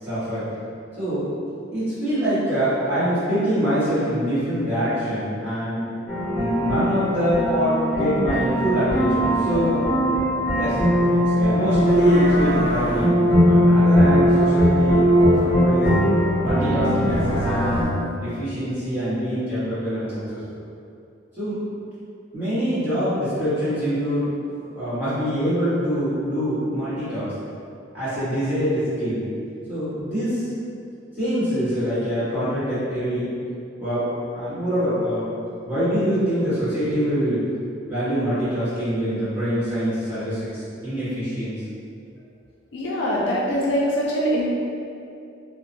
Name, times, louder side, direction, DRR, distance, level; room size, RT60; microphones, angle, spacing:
voice 1, 0.0-0.4 1.0-1.3 1.7-5.8 6.3-9.8 10.5-10.8 11.1-13.1 13.4-16.0 16.4-17.8 18.2-20.6 21.3-21.6 22.3-27.3 27.9-29.2 29.7-30.5 31.2-33.3 33.8-34.1 34.3-35.3 35.6-37.4 37.9-41.5, equal, 10° right, -16 dB, 1.4 m, -24 dB
sound 1, 6.1-17.8, equal, 10° left, 0.6 m, -19 dB
voice 2, 42.7-44.5, equal, 65° left, -5 dB, 0.4 m, -23 dB
2.9 x 2.1 x 2.6 m, 2.5 s
head